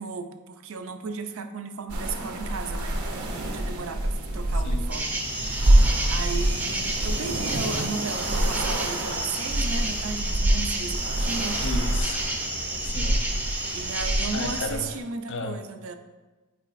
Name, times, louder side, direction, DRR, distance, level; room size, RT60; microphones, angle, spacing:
voice 1, 0.0-5.6 6.1-11.6 13.7-15.9, right 5 dB, 65° right, 7 dB, 0.5 m, -35 dB
sound 1, 1.9-15.0, right 1 dB, 80° right, 0.8 m, -26 dB
voice 2, 4.6-4.9 11.6-12.2 12.8-13.2 14.3-14.9 15.3-15.6, left 3 dB, 55° left, 6 dB, 0.5 m, -33 dB
sound 2, 4.9-14.7, right 1 dB, 5° right, 0.4 m, -31 dB
sound 3, 5.1-9.6, left 1 dB, 80° left, 2.0 m, -45 dB
8.2 x 4.6 x 2.5 m, 1.2 s
head